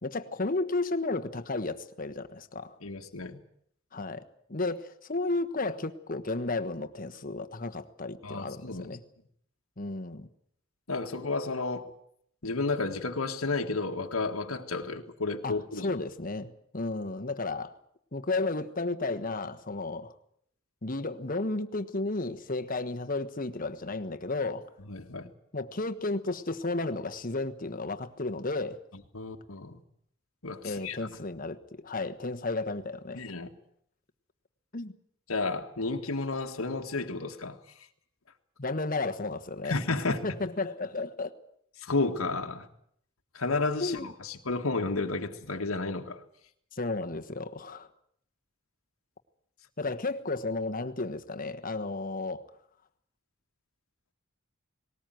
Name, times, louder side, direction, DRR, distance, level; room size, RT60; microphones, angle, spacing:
voice 1, 0.0-2.8 3.9-9.0 9.8-10.3 15.4-17.7 18.1-20.1 20.8-24.7 25.5-28.8 30.6-33.3 34.7-34.9 38.6-39.8 40.2-41.3 43.8-44.1 46.7-47.9 49.8-52.5, left 3 dB, 40° left, 1.3 m, -33 dB
voice 2, 2.8-3.4 8.2-9.0 10.9-11.9 12.4-15.9 24.9-25.3 29.1-29.8 30.4-31.1 33.2-33.5 35.3-37.6 39.6-40.3 41.8-42.7 43.3-46.2, left 3 dB, 90° left, 1.8 m, -32 dB
19.5 x 19.0 x 9.3 m
head